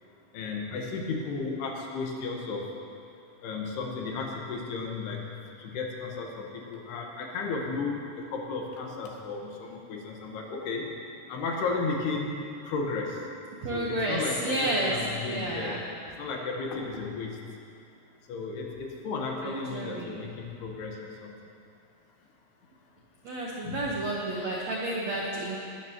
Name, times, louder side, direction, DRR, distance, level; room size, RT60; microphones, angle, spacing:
voice 1, 0.3-2.7 3.4-5.3 5.6-10.9 11.3-12.4 12.6-13.2 13.7-15.8 16.2-17.4 18.3-21.3 23.6-23.9, left 4 dB, 70° left, 0 dB, 3.2 m, -34 dB
voice 2, 13.6-15.0 15.3-15.8 19.4-20.2 23.2-25.6, right 1 dB, 85° right, -3 dB, 1.5 m, -31 dB
20.5 x 13.0 x 3.0 m, 2.5 s
omnidirectional pair, 5.0 m